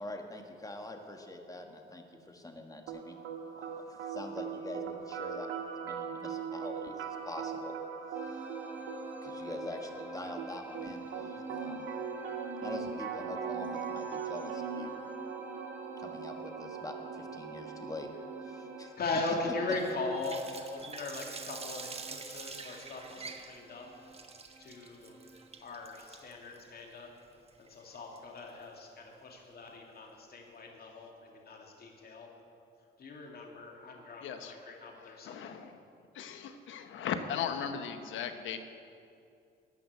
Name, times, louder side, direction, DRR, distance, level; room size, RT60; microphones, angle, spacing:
voice 1, 0.0-3.2 3.5-7.7 8.1-8.6 9.2-11.9 12.6-15.0 16.0-18.1 18.4-18.9, left 1 dB, 15° left, 4 dB, 1.5 m, -45 dB
sound 1, 2.9-18.9, right 7 dB, 80° right, 1.3 m, -40 dB
sound 2, 8.1-25.6, right 1 dB, 10° right, 1.3 m, -48 dB
voice 2, 19.0-23.9 24.6-25.2 25.6-27.1 27.6-32.3 33.0-35.5, left 3 dB, 50° left, 0 dB, 2.4 m, -39 dB
Water tap faucet, 19.7-28.6, right 4 dB, 30° right, 1.1 m, -47 dB
voice 3, 34.2-34.5 35.2-35.8 36.1-38.6, left 8 dB, 80° left, 8 dB, 1.1 m, -37 dB
14.0 x 5.9 x 9.5 m, 2.5 s
cardioid pair, 90°, 20 cm